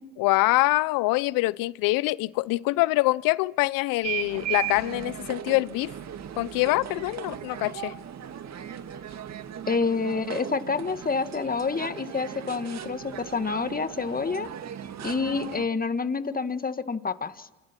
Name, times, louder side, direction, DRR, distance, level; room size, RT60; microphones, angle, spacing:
voice 1, 0.2-5.9 6.4-7.9, left 21 dB, 75° left, 0.7 m, -24 dB
sound 1, 4.0-15.7, right 10 dB, 50° right, 1.9 m, -37 dB
voice 2, 9.7-14.5 15.0-17.5, left 4 dB, 25° left, 1.7 m, -28 dB
28.0 x 27.0 x 6.0 m
supercardioid pair, 65°, 34 cm